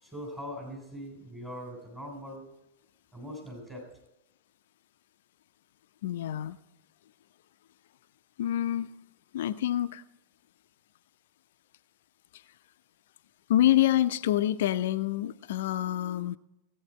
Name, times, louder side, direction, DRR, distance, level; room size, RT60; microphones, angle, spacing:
voice 1, 0.0-2.4 3.1-3.9, equal, 15° right, 0 dB, 3.1 m, -41 dB
voice 2, 6.0-6.6 8.4-8.9 9.3-10.0 13.5-16.4, left 12 dB, 55° left, 13 dB, 0.3 m, -26 dB
17.0 x 8.5 x 4.3 m, 0.96 s
figure-of-eight pair, 90°, 0 cm